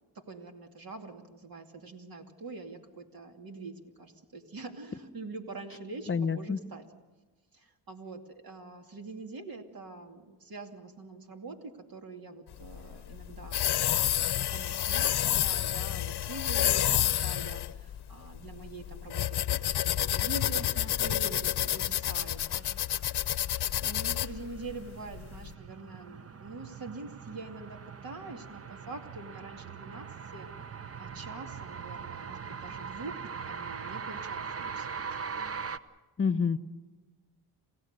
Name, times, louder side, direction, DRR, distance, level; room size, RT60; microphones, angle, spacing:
voice 1, 0.1-6.8 7.5-22.7 23.0-23.1 23.8-30.5 31.0-35.1, right 3 dB, 60° right, 3 dB, 2.6 m, -45 dB
voice 2, 6.1-6.6 36.2-36.6, left 6 dB, 30° left, 13 dB, 1.0 m, -27 dB
sound 1, 12.5-25.5, left 12 dB, 70° left, 0.8 m, -29 dB
sound 2, 23.0-35.8, right 6 dB, 35° right, 0.9 m, -41 dB
28.0 x 16.0 x 6.7 m, 1.2 s
cardioid pair, 70°, 41 cm